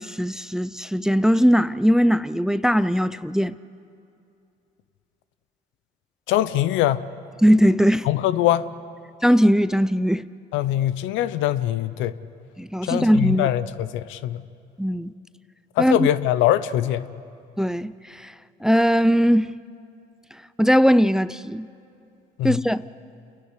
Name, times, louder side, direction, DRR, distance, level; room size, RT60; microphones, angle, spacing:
voice 1, 0.0-3.5 7.4-8.1 9.2-10.3 12.6-13.5 14.8-15.1 15.8-16.1 17.6-18.3 18.6-19.5 20.6-21.7 22.4-22.8, equal, 5° right, 0.5 m, -19 dB
voice 2, 6.3-7.1 8.1-8.6 10.5-12.2 12.8-14.4 15.8-17.1 22.4-22.6, left 13 dB, 75° left, 0.7 m, -22 dB
28.5 x 11.0 x 9.6 m
supercardioid pair, 60°, 20 cm